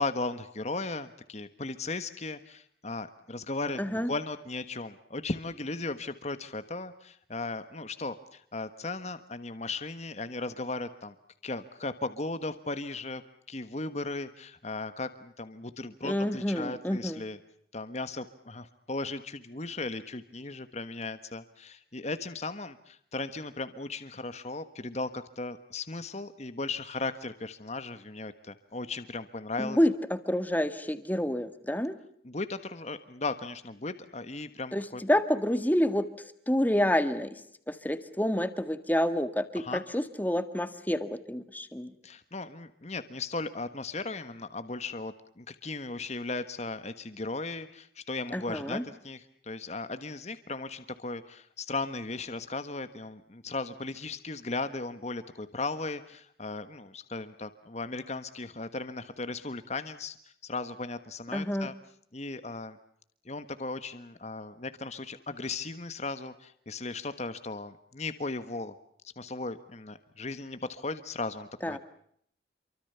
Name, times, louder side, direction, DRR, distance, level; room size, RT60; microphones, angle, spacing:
voice 1, 0.0-11.1 11.4-13.2 13.5-17.4 17.7-29.8 32.2-35.0 39.5-39.8 42.0-60.2 60.4-61.7 62.1-62.8 63.2-68.7 69.2-71.8, left 3 dB, 40° left, 11 dB, 1.4 m, -36 dB
voice 2, 3.8-4.1 16.0-17.2 29.6-31.9 34.7-37.4 37.7-41.9 48.3-48.8 61.3-61.7 71.6-71.8, equal, 10° left, 11 dB, 1.7 m, -28 dB
28.5 x 24.5 x 6.9 m, 0.67 s
head